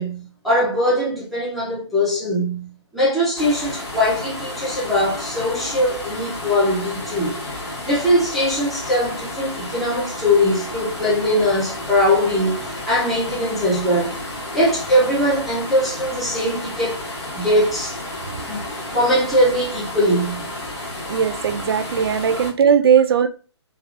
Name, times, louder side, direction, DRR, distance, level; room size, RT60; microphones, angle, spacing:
voice 1, 0.0-7.3 7.8-12.6 12.9-14.2 14.5-17.0 17.3-18.0 18.5-20.5 22.3-22.4, equal, ahead, 0.6 m, -21 dB
sound 1, 3.4-22.5, left 1 dB, 65° left, 1.5 m, -32 dB
voice 2, 21.1-23.3, right 7 dB, 55° right, 0.4 m, -18 dB
3.3 x 2.4 x 2.4 m
figure-of-eight pair, 140°, 15 cm